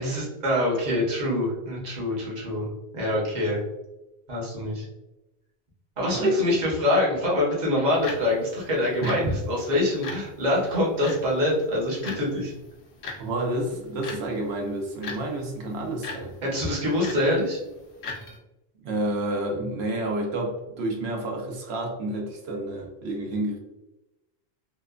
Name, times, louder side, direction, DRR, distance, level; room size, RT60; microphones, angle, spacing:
voice 1, 0.0-2.7 2.9-3.6 4.3-4.9 6.0-12.5 16.4-17.6, left 1 dB, 45° right, -4 dB, 1.0 m, -25 dB
sound 1, 7.9-18.4, left 3 dB, 80° left, 0.9 m, -42 dB
voice 2, 9.0-9.3 13.2-16.3 18.8-23.6, right 1 dB, 80° right, 1 dB, 0.9 m, -29 dB
2.9 x 2.1 x 2.3 m, 0.97 s
omnidirectional pair, 1.1 m